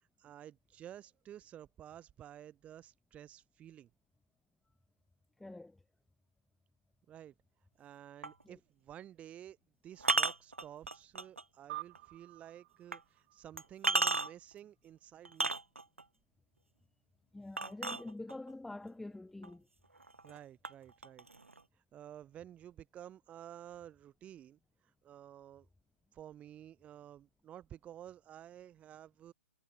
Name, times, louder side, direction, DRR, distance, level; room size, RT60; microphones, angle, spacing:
voice 1, 0.2-3.9 7.1-7.3 7.8-9.6 9.8-15.5 20.2-21.3 21.9-24.6 25.0-25.7 26.1-29.3, right 11 dB, 20° right, 6.7 m, -52 dB
voice 2, 5.4-5.8 8.4-8.6 17.3-19.7, left 2 dB, 5° left, 2.9 m, -46 dB
sound 1, 8.2-8.4 10.0-11.4 12.0-12.1 12.9-13.0 13.6-14.5 15.3-16.0 17.6-18.5 19.4-19.5 20.0-20.4 20.6-21.6, right 3 dB, 80° right, 1.5 m, -33 dB
sound 2, 11.7-14.4, right 17 dB, 40° right, 1.2 m, -49 dB
figure-of-eight pair, 120°, 7 cm